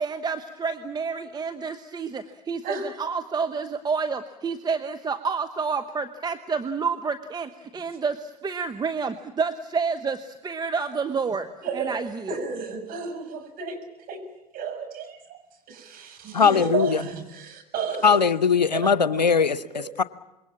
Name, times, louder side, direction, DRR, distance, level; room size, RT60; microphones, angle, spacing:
voice 1, 0.0-11.5 11.7-12.4, right 5 dB, 20° right, 8 dB, 1.0 m, -29 dB
voice 2, 11.6-12.0 12.3-14.3 14.5-15.4 15.7-18.2 18.6-19.3 19.7-19.9, right 5 dB, 45° right, 4 dB, 6.9 m, -33 dB
voice 3, 16.3-17.0 18.0-20.0, left 6 dB, 90° left, 17 dB, 0.8 m, -20 dB
26.0 x 22.0 x 7.4 m, 0.96 s
figure-of-eight pair, 80°, 21 cm